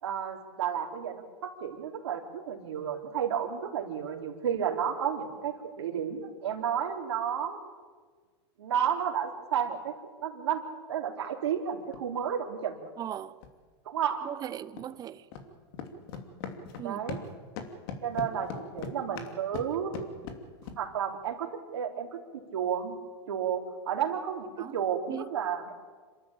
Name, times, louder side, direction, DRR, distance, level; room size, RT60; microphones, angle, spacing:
voice 1, 0.0-7.6 8.6-9.9 10.2-10.6 10.9-12.9 13.9-14.3 16.8-17.2 18.0-19.9 20.8-22.9 23.3-25.8, right 8 dB, 85° right, 3.6 m, -32 dB
sound 1, 11.8-12.0 13.4-13.5 14.8-14.9 15.3-15.5 15.7-17.3 17.6-20.8, left 6 dB, 60° left, 2.8 m, -39 dB
voice 2, 13.0-13.4 14.2-15.2 16.8-17.0 24.6-24.7 25.1-25.3, right 10 dB, 30° right, 0.8 m, -38 dB
27.5 x 13.0 x 8.8 m
supercardioid pair, 125°, 14 cm